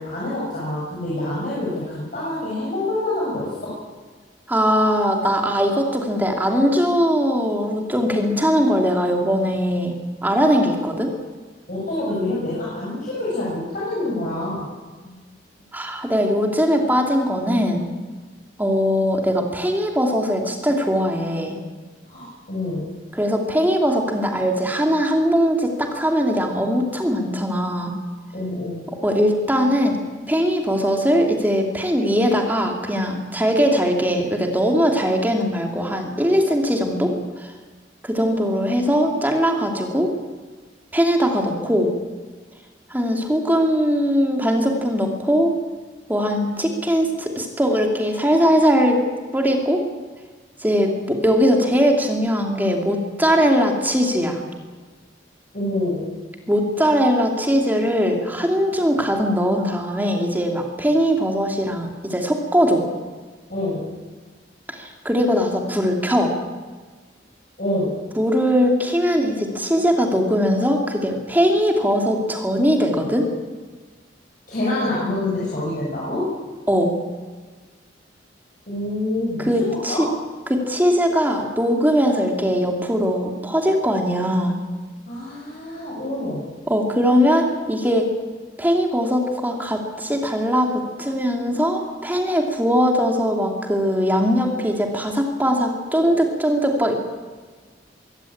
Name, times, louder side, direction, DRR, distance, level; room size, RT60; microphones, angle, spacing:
voice 1, 0.0-3.8 11.7-14.7 15.0-15.2 22.1-22.9 28.3-28.9 55.5-56.1 63.5-63.9 67.6-67.9 74.5-76.4 78.7-80.0 85.1-86.4, left 1 dB, 45° left, -7 dB, 7.3 m, -26 dB
voice 2, 4.5-9.9 10.2-11.1 15.7-17.9 18.6-21.6 23.1-27.9 29.0-30.0 30.3-37.5 38.0-40.1 40.9-41.9 42.9-45.5 46.1-49.0 49.3-49.8 50.6-54.4 56.5-62.9 64.7-66.3 68.2-73.3 76.7-76.9 79.4-80.1 80.5-84.6 86.7-88.1 88.6-96.9, equal, 10° right, 2 dB, 2.8 m, -20 dB
23.0 x 16.5 x 8.7 m, 1.4 s
head